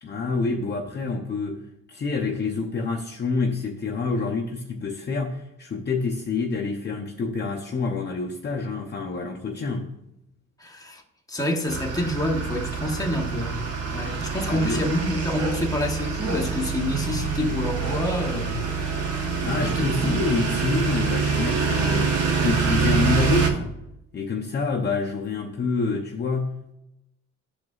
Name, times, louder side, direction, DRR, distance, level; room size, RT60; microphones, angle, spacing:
voice 1, 0.0-9.9 14.4-14.9 19.4-23.7 24.1-26.7, left 4 dB, 35° left, 0.7 m, -27 dB
voice 2, 10.6-11.0 11.3-18.6 19.6-20.2, left 1 dB, 10° left, 1.1 m, -27 dB
sound 1, 11.7-23.5, right 5 dB, 55° right, 1.1 m, -26 dB
11.5 x 4.7 x 2.4 m
cardioid pair, 90°, 30 cm